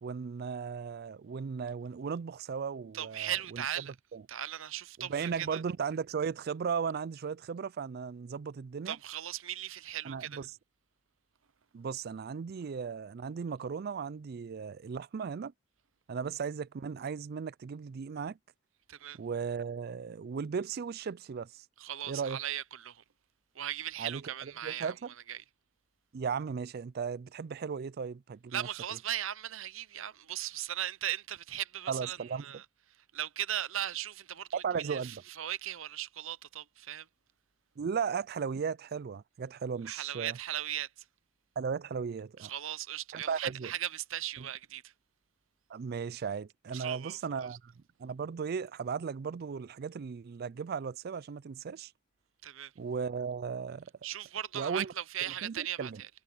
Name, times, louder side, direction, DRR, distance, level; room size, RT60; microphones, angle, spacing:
voice 1, 0.0-3.6 4.1-4.2 5.0-9.0 10.0-10.5 11.7-15.5 16.1-18.4 19.2-21.6 22.1-22.4 24.0-25.1 26.1-28.7 31.9-32.4 34.5-35.2 37.8-40.4 41.6-42.5 43.1-43.7 44.4-44.5 45.7-51.9 52.8-53.9 54.5-54.9 55.4-56.0, right 6 dB, 45° right, 0.3 m, -36 dB
voice 2, 2.9-3.9 4.3-5.6 8.9-10.4 18.9-19.2 21.8-23.0 23.5-24.9 25.3-25.4 28.5-32.6 33.1-37.1 39.9-40.9 42.4-44.9 46.7-47.2 52.4-52.7 54.0-56.1, right 11 dB, 65° right, 0.7 m, -38 dB
head